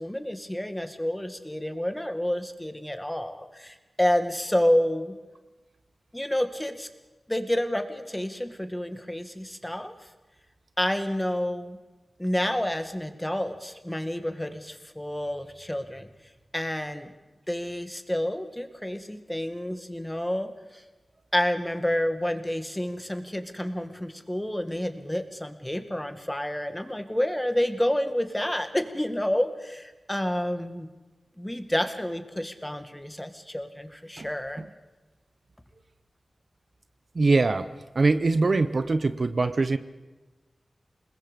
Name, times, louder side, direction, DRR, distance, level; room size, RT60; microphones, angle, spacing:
voice 1, 0.0-5.1 6.1-6.9 7.3-9.9 10.8-11.8 12.2-16.1 16.5-17.1 17.5-20.8 21.3-30.9 31.4-34.6, left 1 dB, 10° left, 8 dB, 1.9 m, -29 dB
voice 2, 37.2-37.7 38.0-39.8, right 3 dB, 55° right, 12 dB, 0.9 m, -22 dB
28.0 x 20.5 x 5.3 m, 1.1 s
wide cardioid pair, 80°, 0 cm